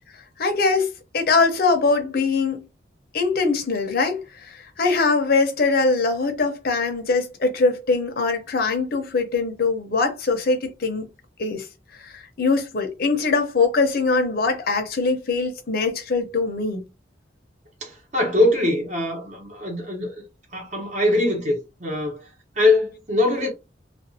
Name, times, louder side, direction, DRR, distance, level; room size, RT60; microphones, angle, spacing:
voice 1, 0.4-2.7 3.1-11.1 11.4-11.6 12.0-16.8, left 4 dB, 55° left, 0.7 m, -22 dB
voice 2, 17.8-20.1 20.5-22.2 22.6-23.5, left 2 dB, 40° right, 1.0 m, -22 dB
2.5 x 2.4 x 2.7 m
head